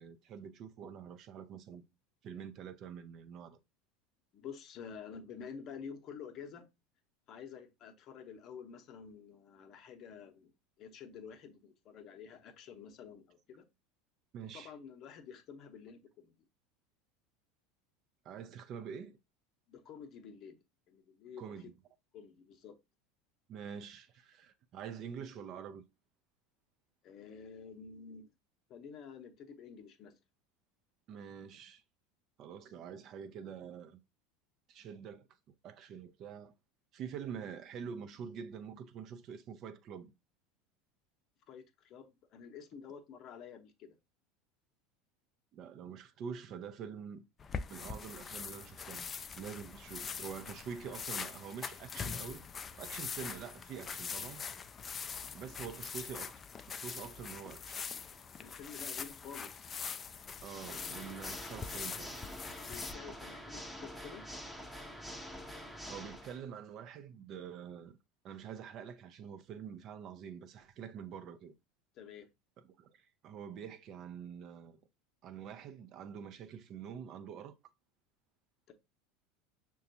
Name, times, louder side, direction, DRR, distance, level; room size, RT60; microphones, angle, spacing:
voice 1, 0.0-1.8 2.2-3.6 14.3-14.7 18.2-19.2 21.4-21.7 23.5-25.8 31.1-31.8 32.4-34.0 34.7-35.3 35.6-36.5 36.9-40.1 45.5-47.2 47.7-52.5 52.7-54.4 55.3-56.3 56.7-57.8 60.4-62.2 65.9-68.0 68.2-71.5 72.8-74.8 75.2-77.5, right 7 dB, 50° right, 0.5 m, -46 dB
voice 2, 4.3-6.7 7.3-10.5 10.8-13.6 14.5-16.3 19.7-20.6 20.9-21.7 22.1-22.8 27.0-28.3 28.7-30.2 41.5-44.0 58.3-59.7 62.7-64.3 71.9-72.3 78.7-78.8, left 6 dB, 50° left, 0.7 m, -50 dB
sound 1, 47.4-62.9, left 6 dB, 30° left, 0.3 m, -43 dB
Water / Mechanisms, 60.4-66.4, equal, ahead, 0.7 m, -46 dB
5.7 x 2.3 x 2.7 m
hypercardioid pair, 80°, 0 cm